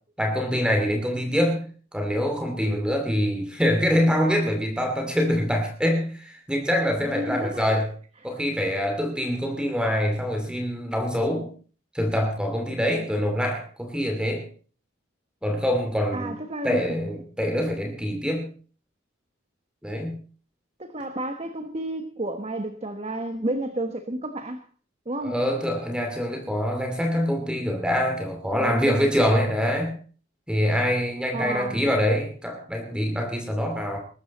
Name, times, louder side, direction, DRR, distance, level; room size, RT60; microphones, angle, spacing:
voice 1, 0.2-1.6 1.9-7.9 8.2-11.5 11.9-14.4 15.4-16.3 16.6-18.5 19.8-20.2 25.2-30.0 30.5-34.0, equal, 5° right, 2.5 m, -25 dB
voice 2, 7.0-7.6 16.1-16.8 20.8-24.6 25.1-25.3 28.5-29.1 31.3-31.8, right 1 dB, 30° right, 1.2 m, -31 dB
21.5 x 12.5 x 4.2 m
head